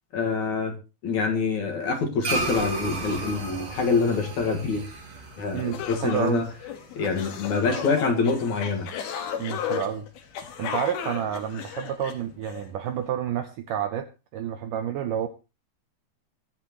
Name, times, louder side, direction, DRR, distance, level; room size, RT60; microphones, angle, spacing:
voice 1, 0.1-0.7 1.0-4.8 5.4-6.4 7.0-8.9, left 4 dB, 55° left, 3 dB, 2.8 m, -25 dB
sound 1, 2.2-6.9, right 2 dB, 45° right, 3.2 m, -33 dB
sound 2, 5.2-5.3 5.5-12.6, left 8 dB, 70° left, 3.5 m, -34 dB
voice 2, 5.5-6.5 9.4-10.1 10.6-15.3, right 9 dB, 75° right, 8 dB, 2.0 m, -29 dB
24.0 x 8.2 x 3.1 m, 0.30 s
omnidirectional pair, 4.6 m